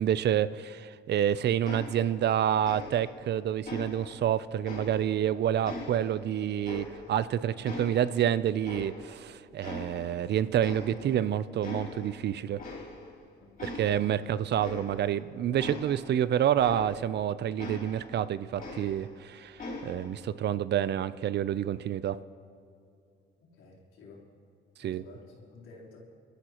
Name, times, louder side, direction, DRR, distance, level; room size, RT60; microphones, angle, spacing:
voice 1, 0.0-12.6 13.6-22.2 24.8-25.0, right 10 dB, 60° right, 16 dB, 0.5 m, -28 dB
sound 1, 1.6-2.4 2.6-3.3 3.6-5.3 5.6-7.3 7.6-9.3 9.6-10.3 10.6-11.3 11.6-12.2 12.6-13.2 13.6-17.2 17.6-19.2 19.6-20.2, left 2 dB, 45° left, 3.9 m, -42 dB
voice 2, 23.4-24.3 24.8-26.0, left 3 dB, 85° left, -5 dB, 3.7 m, -52 dB
25.0 x 13.0 x 3.0 m, 2.5 s
cardioid pair, 90°, 20 cm